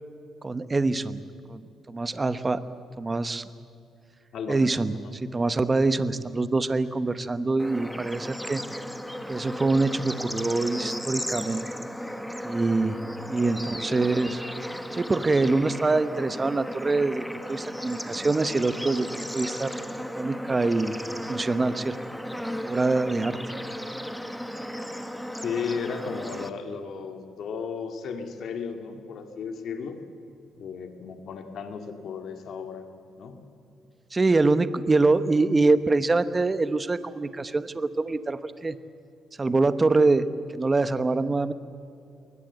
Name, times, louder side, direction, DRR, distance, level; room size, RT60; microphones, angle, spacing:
voice 1, 0.4-1.2 1.5-1.6 1.9-2.6 3.0-3.4 4.5-8.6 9.3-11.6 12.4-13.0 13.3-14.4 14.9-19.7 20.2-21.0 21.3-22.0 22.6-23.4 34.1-38.8 39.4-40.2 40.5-41.5, right 3 dB, 20° right, 13 dB, 1.0 m, -24 dB
voice 2, 4.3-4.6 5.0-5.1 13.4-13.5 13.8-14.1 25.4-30.0 30.6-32.9 33.2-33.4, left 6 dB, 65° left, 6 dB, 2.1 m, -35 dB
Bird / Insect / Frog, 7.6-26.5, equal, ahead, 1.1 m, -35 dB
22.0 x 19.5 x 8.1 m, 2.6 s
cardioid pair, 110°, 0 cm